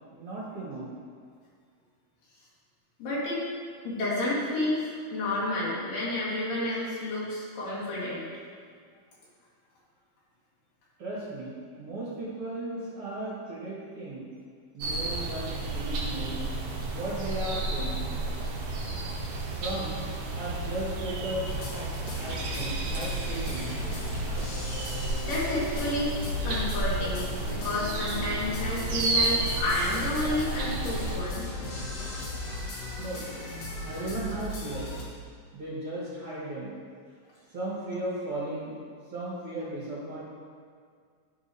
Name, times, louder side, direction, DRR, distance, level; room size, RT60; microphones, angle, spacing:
voice 1, 0.1-0.9 11.0-11.5 11.8-14.2 14.7-16.4 16.9-18.0 19.5-20.0 20.4-21.9 22.2-23.7 32.5-32.6 33.0-33.2 33.8-35.0 35.5-36.7 37.5-38.8 39.1-40.2, right 1 dB, 50° right, -9 dB, 1.9 m, -36 dB
voice 2, 3.0-3.5 3.8-8.3 25.3-26.1 26.4-31.5, left 1 dB, 75° left, -8 dB, 3.4 m, -30 dB
sound 1, 14.8-31.2, right 2 dB, 75° right, 1.4 m, -32 dB
sound 2, 21.4-35.0, left 2 dB, 60° left, 2.0 m, -36 dB
11.0 x 5.0 x 2.7 m, 2.1 s
omnidirectional pair, 3.9 m